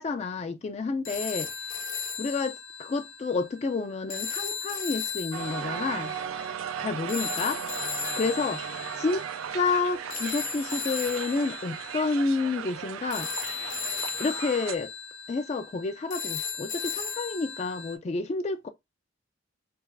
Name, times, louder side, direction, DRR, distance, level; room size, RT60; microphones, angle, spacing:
voice 1, 0.0-1.5 2.2-6.1 6.8-7.6 8.1-9.2 9.5-13.3 14.2-14.9 15.3-18.7, left 4 dB, 35° left, 0.3 m, -29 dB
sound 1, 1.0-17.9, left 6 dB, 65° left, 0.8 m, -36 dB
Crowd, 5.3-14.8, right 8 dB, 85° right, 0.3 m, -36 dB
3.3 x 2.4 x 3.3 m
head